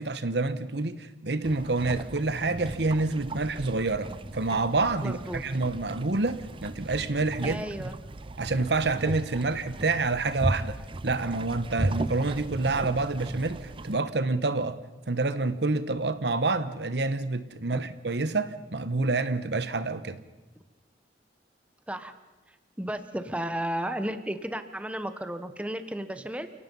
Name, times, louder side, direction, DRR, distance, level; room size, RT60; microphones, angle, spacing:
voice 1, 0.0-7.6 8.4-14.8 15.1-20.2, right 3 dB, 75° right, 1.1 m, -28 dB
sound 1, 1.4-14.0, right 2 dB, 30° right, 0.6 m, -36 dB
voice 2, 5.0-5.4 7.4-8.0 17.7-17.8 21.9-22.1 22.5-26.5, right 1 dB, 10° right, 1.1 m, -34 dB
29.0 x 18.0 x 5.5 m
head